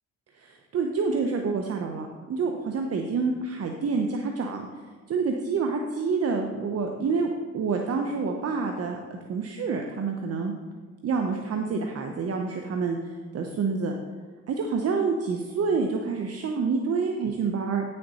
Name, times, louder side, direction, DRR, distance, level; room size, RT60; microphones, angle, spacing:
voice 1, 0.3-4.7 5.1-9.0 9.3-10.5 11.0-14.0 14.5-17.8, right 4 dB, 55° right, 3 dB, 0.8 m, -28 dB
9.3 x 6.7 x 4.1 m, 1.5 s
cardioid pair, 90°, 30 cm